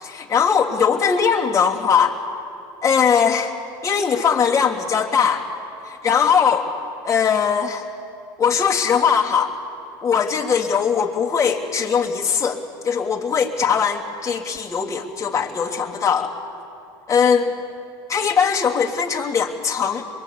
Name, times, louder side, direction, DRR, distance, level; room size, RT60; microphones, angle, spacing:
voice 1, 0.0-2.1 2.8-3.5 3.8-5.5 5.8-6.7 7.0-7.8 8.4-9.5 10.0-16.3 17.1-17.5 18.1-20.1, left 6 dB, 30° left, -2 dB, 3.1 m, -20 dB
23.5 x 23.0 x 8.7 m, 2.6 s
supercardioid pair, 90°, 11 cm